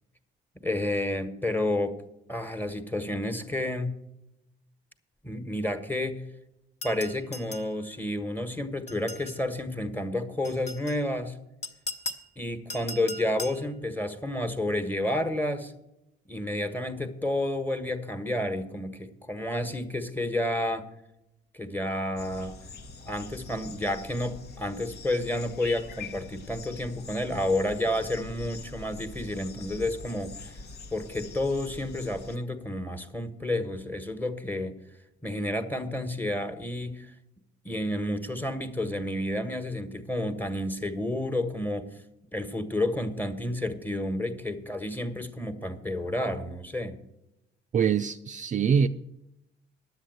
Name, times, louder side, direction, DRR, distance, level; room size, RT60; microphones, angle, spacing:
voice 1, 0.6-2.0 2.3-3.9 5.2-6.2 6.8-11.4 12.4-15.7 16.3-20.9 21.5-22.5 23.0-30.5 30.9-34.7 35.2-37.1 37.6-41.9 42.3-47.0, left 1 dB, 10° left, 1.3 m, -30 dB
sound 1, 6.8-7.7 8.9-9.4 10.4-11.0 11.6-12.3 12.7-13.6, left 2 dB, 35° left, 1.2 m, -38 dB
sound 2, 22.2-32.4, left 3 dB, 55° left, 1.0 m, -44 dB
voice 2, 47.7-48.9, right 7 dB, 40° right, 0.4 m, -24 dB
10.0 x 8.1 x 8.0 m
cardioid pair, 90°, 20 cm